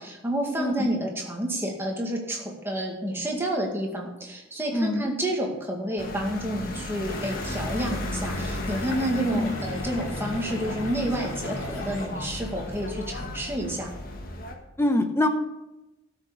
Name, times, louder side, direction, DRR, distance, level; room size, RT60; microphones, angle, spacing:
voice 1, 0.0-13.9, right 1 dB, 10° right, 0 dB, 2.1 m, -29 dB
voice 2, 0.6-0.9 4.7-5.1 9.3-9.6 14.8-15.3, left 1 dB, 10° left, 6 dB, 1.0 m, -24 dB
sound 1, 6.0-14.5, left 1 dB, 45° left, 1.6 m, -34 dB
sound 2, 7.1-12.1, left 2 dB, 70° left, 2.7 m, -38 dB
12.5 x 6.6 x 7.0 m, 0.96 s
head